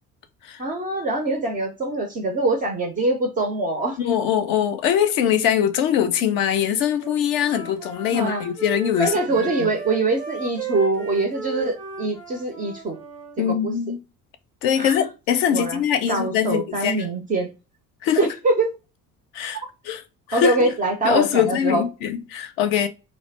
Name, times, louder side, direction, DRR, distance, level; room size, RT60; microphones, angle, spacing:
voice 1, 0.6-4.0 8.1-8.4 9.0-13.0 13.6-13.7 14.8-15.0 15.5-15.8 16.1-17.5 18.2-18.7 20.3-21.8, right 2 dB, 20° right, 0.3 m, -23 dB
voice 2, 4.0-9.7 13.4-14.0 14.6-17.0 18.0-18.3 19.3-20.0 20.3-20.7 21.0-22.9, left 9 dB, 50° left, 0.5 m, -22 dB
Wind instrument woodwind instrument, 7.0-13.4, right 5 dB, 90° right, 0.6 m, -35 dB
2.4 x 2.1 x 3.1 m
figure-of-eight pair, 55°, 48 cm